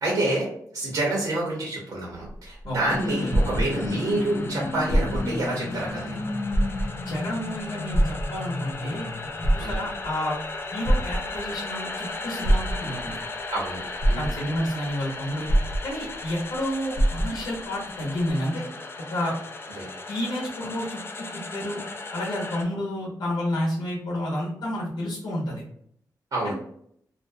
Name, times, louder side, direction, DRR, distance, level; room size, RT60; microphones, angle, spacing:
voice 1, 0.0-6.2 9.6-9.8 13.5-14.3 19.7-19.9 26.3-26.5, right 2 dB, 65° right, -4 dB, 0.9 m, -28 dB
sound 1, 2.3-4.2 4.8-5.5 5.9-6.0 6.5-7.2 7.9-8.7 9.3-10.1 10.8-11.6 12.4-13.1 13.7-13.8 14.0-14.7 15.5-16.3 16.5-16.6 16.9-17.6 18.3-18.4, right 1 dB, 45° right, 0.6 m, -24 dB
sound 2, 2.9-22.6, left 3 dB, 35° left, 0.3 m, -34 dB
voice 2, 7.1-9.1 9.5-10.4 10.7-13.2 14.2-15.5 15.8-18.7 19.1-19.3 20.1-21.3 21.5-21.8 22.1-25.6 26.4-26.5, left 1 dB, 80° left, -4 dB, 0.8 m, -30 dB
2.5 x 2.2 x 2.6 m, 0.67 s
wide cardioid pair, 110°, 7 cm